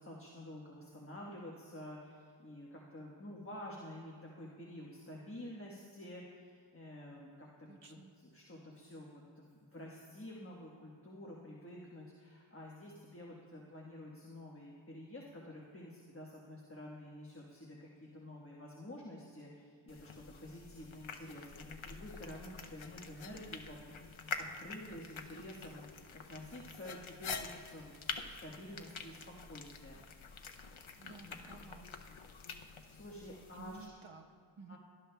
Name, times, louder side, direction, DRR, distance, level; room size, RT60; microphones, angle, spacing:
voice 1, 0.0-25.8 26.3-30.0 30.3-30.6 31.2-31.4 32.9-33.9 34.7-34.8, left 1 dB, 25° left, -4 dB, 1.4 m, -50 dB
voice 2, 7.7-8.1 31.0-31.9 33.5-34.8, right 4 dB, 75° right, 3 dB, 1.0 m, -54 dB
sound 1, 19.9-33.9, left 5 dB, 75° left, 0.7 m, -47 dB
18.0 x 11.5 x 2.3 m, 2.1 s
wide cardioid pair, 45°, 48 cm